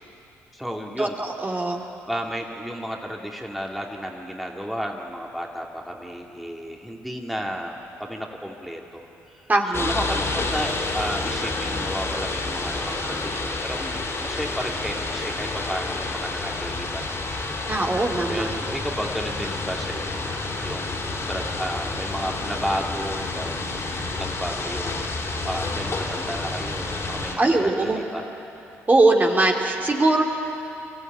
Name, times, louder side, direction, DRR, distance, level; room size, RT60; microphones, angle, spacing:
voice 1, 0.5-1.2 1.6-17.3 17.7-20.3 20.6-25.2 25.4-28.3, equal, ahead, 0 dB, 2.5 m, -33 dB
voice 2, 1.4-1.8 9.5-9.9 17.7-18.5 27.4-28.0 28.9-30.2, right 2 dB, 25° right, 1 dB, 2.6 m, -20 dB
sound 1, 9.7-27.4, left 3 dB, 45° left, 3.7 m, -29 dB
24.0 x 14.5 x 9.4 m, 3.0 s
hypercardioid pair, 50°, 6 cm